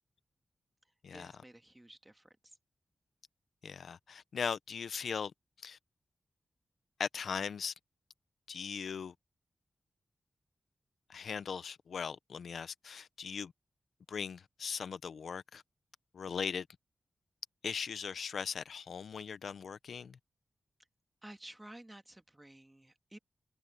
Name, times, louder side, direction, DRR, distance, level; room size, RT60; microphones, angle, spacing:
voice 1, 1.1-2.5 21.2-23.2, right 1 dB, 15° right, 1.7 m, -53 dB
voice 2, 3.6-5.3 5.6-5.8 7.0-7.7 8.5-9.1 11.1-13.5 14.1-15.6 16.1-16.7 17.6-20.2, left 6 dB, 85° left, 0.6 m, -39 dB
wide cardioid pair, 105°, 0 cm